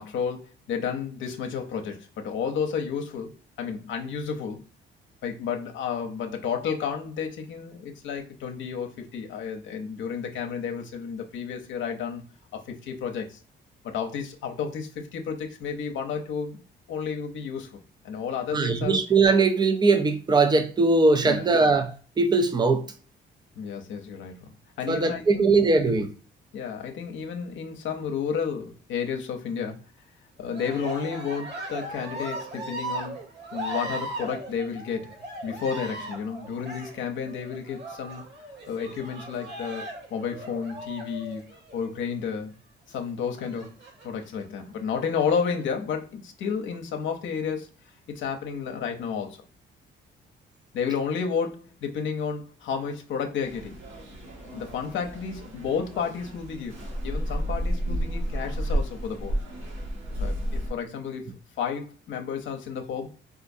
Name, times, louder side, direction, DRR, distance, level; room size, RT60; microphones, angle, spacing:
voice 1, 0.0-3.3 3.6-4.6 5.2-12.2 12.5-13.4 13.8-16.6 16.9-17.8 18.0-19.0 21.2-21.5 23.6-24.3 24.8-25.5 25.9-26.0 26.5-29.8 30.4-33.2 33.5-35.2 35.4-38.3 38.7-39.8 40.1-41.4 41.7-42.5 42.9-43.7 44.0-47.7 48.1-49.4 50.7-53.8 54.5-59.3 60.2-61.3 61.6-63.1, left 6 dB, 70° left, 0.7 m, -31 dB
voice 2, 18.5-22.9 24.9-26.1, right 3 dB, 20° right, 0.5 m, -21 dB
Cheering, 30.4-42.1 43.4-44.3 45.0-45.6, right 1 dB, 60° right, 1.2 m, -38 dB
sound 1, 53.4-60.7, equal, 80° right, 1.0 m, -31 dB
3.9 x 2.4 x 2.6 m
cardioid pair, 90°, 20 cm